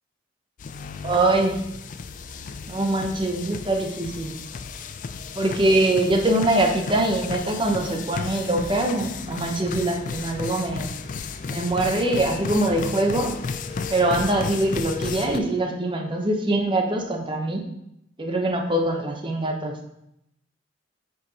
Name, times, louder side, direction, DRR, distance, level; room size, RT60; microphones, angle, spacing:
sound 1, 0.6-15.4, left 5 dB, 45° left, 0.3 m, -34 dB
voice 1, 1.0-1.6 2.7-4.3 5.4-10.9 11.5-13.3 13.9-17.6 18.2-19.7, right 1 dB, 25° right, 3 dB, 0.8 m, -23 dB
7.8 x 4.7 x 2.8 m, 0.80 s
head